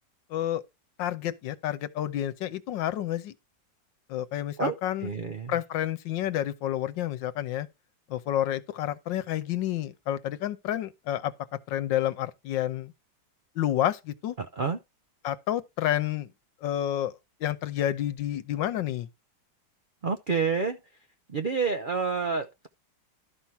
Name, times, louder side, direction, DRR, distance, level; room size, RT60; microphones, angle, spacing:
voice 1, 0.3-0.6 1.0-3.3 4.1-5.1 5.5-7.7 8.1-11.3 11.7-12.9 13.6-14.3 15.2-16.3 16.6-17.1 17.4-19.1, left 12 dB, 85° left, 1.5 m, -29 dB
voice 2, 5.0-5.6 14.4-14.8 20.0-20.8 21.3-22.7, right 5 dB, 75° right, 0.4 m, -28 dB
12.0 x 5.7 x 4.6 m
omnidirectional pair, 2.0 m